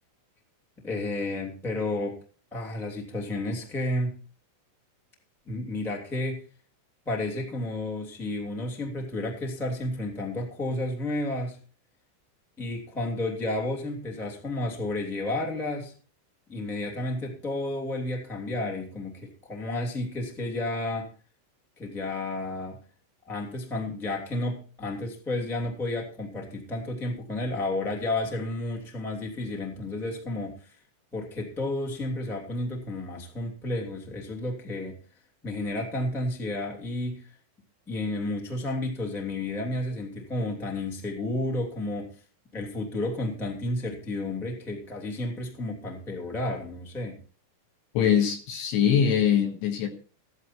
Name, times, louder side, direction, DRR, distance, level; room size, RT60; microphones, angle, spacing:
voice 1, 0.8-2.2 2.5-4.2 5.4-6.4 7.0-11.6 12.6-15.9 16.5-21.1 21.8-22.8 23.2-30.7 31.1-35.0 35.4-37.3 37.9-42.1 42.5-47.2, left 2 dB, ahead, 1.2 m, -31 dB
voice 2, 47.9-49.9, left 8 dB, 70° left, 3.4 m, -23 dB
15.0 x 11.0 x 4.4 m
omnidirectional pair, 5.8 m